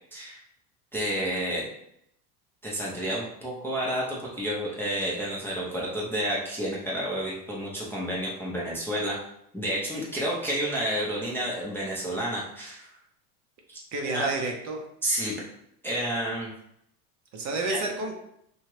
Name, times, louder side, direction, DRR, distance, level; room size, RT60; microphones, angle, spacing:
voice 1, 0.9-1.7 2.6-9.2 9.5-12.9 13.7-13.8 14.0-14.3 15.0-15.4 15.8-16.5 17.7-17.8, right 1 dB, 5° left, -6 dB, 0.5 m, -30 dB
voice 2, 13.9-14.8 17.3-18.1, right 2 dB, 40° right, 2 dB, 0.6 m, -30 dB
2.8 x 2.3 x 3.1 m, 0.75 s
supercardioid pair, 115°, 46 cm